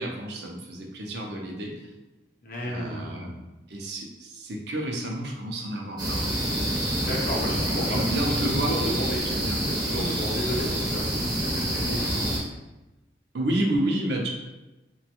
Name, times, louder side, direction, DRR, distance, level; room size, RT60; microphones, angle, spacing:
voice 1, 0.0-1.9 2.6-3.3 3.7-6.3 7.4-8.7 9.2-9.6 13.3-14.3, right 1 dB, 60° right, 0 dB, 0.5 m, -30 dB
voice 2, 2.4-3.4 7.0-8.0 8.3-9.4 9.7-12.3, left 1 dB, 50° left, -3 dB, 0.7 m, -33 dB
sound 1, 6.0-12.4, right 1 dB, 20° right, 0.6 m, -27 dB
3.0 x 2.2 x 2.9 m, 1.0 s
head